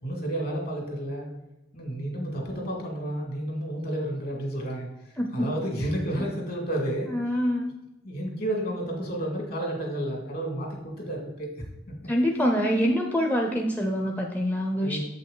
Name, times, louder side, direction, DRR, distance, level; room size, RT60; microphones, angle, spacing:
voice 1, 0.0-1.3 1.7-7.1 8.0-11.5 11.9-12.0 14.8-15.0, right 1 dB, 50° left, 1 dB, 2.2 m, -31 dB
voice 2, 5.2-5.5 7.1-7.8 12.1-15.0, equal, 10° left, 1 dB, 0.5 m, -25 dB
7.7 x 5.4 x 3.8 m, 0.95 s
head